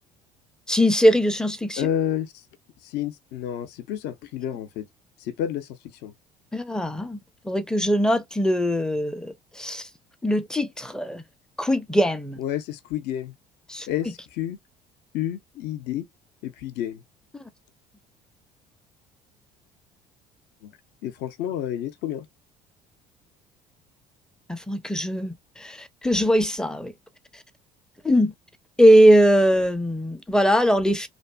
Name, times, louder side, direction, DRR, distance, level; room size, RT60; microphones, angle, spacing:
voice 1, 0.7-1.9 6.5-7.2 7.4-9.9 10.2-11.2 11.6-12.4 13.7-14.1 17.3-17.4 24.5-26.9 27.3-27.4 28.0-28.3 28.8-31.1, equal, 5° left, 0.4 m, -21 dB
voice 2, 1.8-2.4 2.8-4.9 5.2-5.7 6.0-6.1 12.4-13.3 13.9-14.6 15.1-16.0 16.4-17.0 20.6-20.7 21.0-22.3, left 11 dB, 55° left, 0.5 m, -30 dB
2.5 x 2.3 x 2.2 m
figure-of-eight pair, 55°, 21 cm